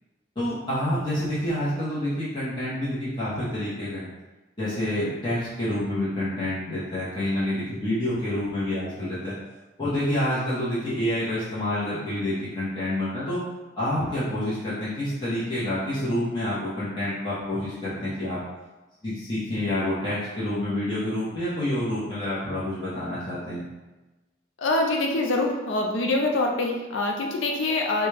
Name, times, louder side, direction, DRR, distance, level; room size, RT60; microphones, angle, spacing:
voice 1, 0.3-4.1 4.6-9.3 9.8-13.4 13.8-18.4 19.0-23.6, left 1 dB, 25° left, -11 dB, 0.9 m, -28 dB
voice 2, 24.6-28.1, left 2 dB, 80° left, 1 dB, 0.5 m, -25 dB
3.9 x 2.3 x 3.3 m, 1.1 s
head